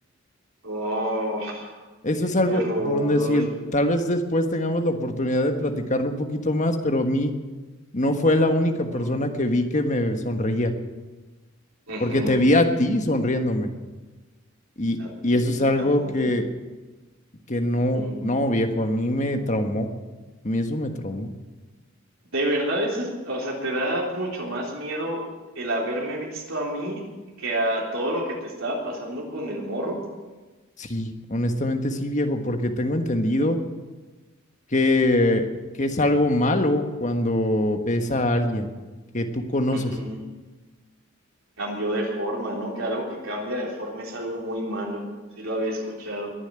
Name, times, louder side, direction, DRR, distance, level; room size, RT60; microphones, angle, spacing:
voice 1, 0.6-1.8 2.2-3.4 8.9-9.1 11.9-12.4 15.0-16.3 17.7-18.2 22.3-25.2 25.6-27.0 27.4-30.0 39.7-40.2 41.6-45.1 45.4-46.3, right 1 dB, 80° right, -3 dB, 3.7 m, -29 dB
voice 2, 2.0-3.5 3.7-7.3 7.9-10.7 12.0-13.7 14.8-15.0 15.2-16.5 17.5-19.9 20.4-21.3 30.8-33.6 34.7-35.4 35.8-38.7 39.1-39.9, left 1 dB, 35° left, 5 dB, 1.5 m, -23 dB
21.5 x 7.4 x 8.8 m, 1.3 s
head